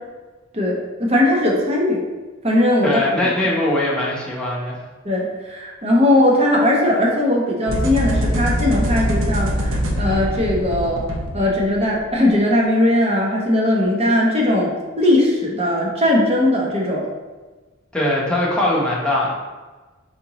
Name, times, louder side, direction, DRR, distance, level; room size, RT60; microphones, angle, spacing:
voice 1, 0.5-2.0 2.4-3.0 5.0-11.0 11.3-17.0, left 1 dB, 30° right, -3 dB, 0.9 m, -19 dB
voice 2, 2.8-4.8 17.9-19.3, left 1 dB, 5° left, -6 dB, 0.9 m, -21 dB
sound 1, 7.7-12.0, equal, 80° right, 0.7 m, -23 dB
4.2 x 3.8 x 3.0 m, 1.3 s
head